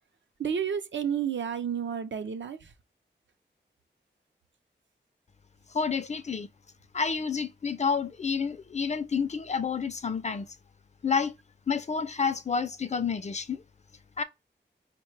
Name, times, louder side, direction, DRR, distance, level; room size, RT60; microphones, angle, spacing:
voice 1, 0.4-2.6, right 8 dB, 75° right, 0.5 m, -30 dB
voice 2, 5.7-6.5 6.9-10.5 11.0-11.3 11.7-13.6 14.2-14.3, left 5 dB, 35° left, 0.4 m, -29 dB
4.8 x 2.2 x 3.2 m
wide cardioid pair, 70°, 19 cm